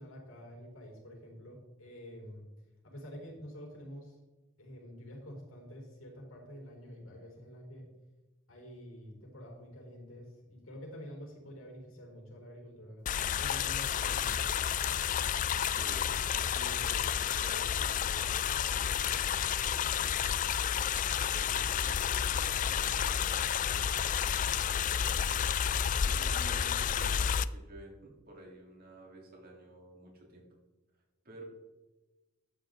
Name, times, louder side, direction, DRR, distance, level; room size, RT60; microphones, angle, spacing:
voice 1, 0.0-2.5 2.8-4.2 4.6-7.9 8.5-13.1 13.4-14.6 23.7-23.9, equal, 85° left, 0 dB, 4.2 m, -48 dB
sound 1, 13.1-27.5, left 8 dB, 40° left, 0.3 m, -31 dB
voice 2, 15.7-20.5 21.2-23.3 23.6-25.6 26.0-30.5 31.2-31.4, right 1 dB, 50° right, -1 dB, 3.4 m, -52 dB
12.0 x 8.6 x 3.9 m, 1.1 s
head